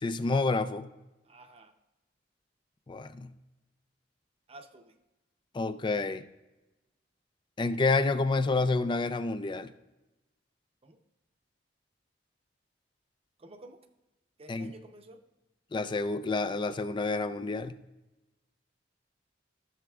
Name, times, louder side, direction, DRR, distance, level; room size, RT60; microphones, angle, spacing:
voice 1, 0.0-0.9 2.9-3.3 5.5-6.2 7.6-9.7 14.5-14.7 15.7-17.8, left 3 dB, 25° left, 12 dB, 0.3 m, -29 dB
voice 2, 1.3-1.7 4.5-4.9 10.8-11.0 13.4-13.8 14.4-15.2, right 2 dB, 30° right, 6 dB, 0.7 m, -51 dB
14.0 x 6.9 x 2.4 m, 1.0 s
head